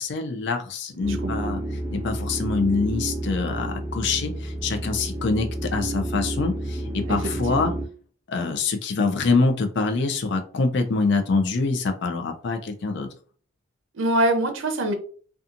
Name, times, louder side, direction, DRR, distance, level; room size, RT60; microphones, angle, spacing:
voice 1, 0.0-1.6 1.9-7.7 8.3-13.1, left 3 dB, 60° left, 5 dB, 0.4 m, -25 dB
sound 1, 1.0-7.9, right 1 dB, 15° right, 0.4 m, -30 dB
voice 2, 1.1-1.5 7.1-7.2 7.5-7.8 13.9-14.9, right 1 dB, 75° right, 6 dB, 0.6 m, -24 dB
2.7 x 2.3 x 2.5 m, 0.44 s
head